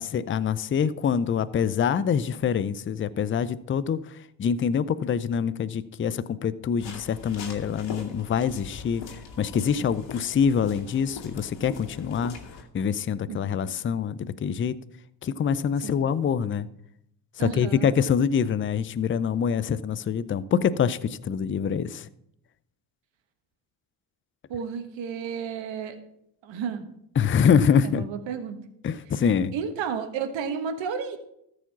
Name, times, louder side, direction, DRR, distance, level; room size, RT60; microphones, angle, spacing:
voice 1, 0.0-12.4 12.7-14.8 15.2-16.7 17.4-22.1 27.2-28.1 28.8-29.5, left 7 dB, 25° left, 0.5 m, -25 dB
sound 1, 6.8-12.6, left 5 dB, 60° left, 2.1 m, -41 dB
voice 2, 13.3-13.7 15.8-16.0 17.4-17.9 24.5-26.0 26.4-26.8 27.8-28.6 29.5-31.2, right 6 dB, 60° right, 1.5 m, -32 dB
13.5 x 5.0 x 5.9 m
hypercardioid pair, 55°, 50 cm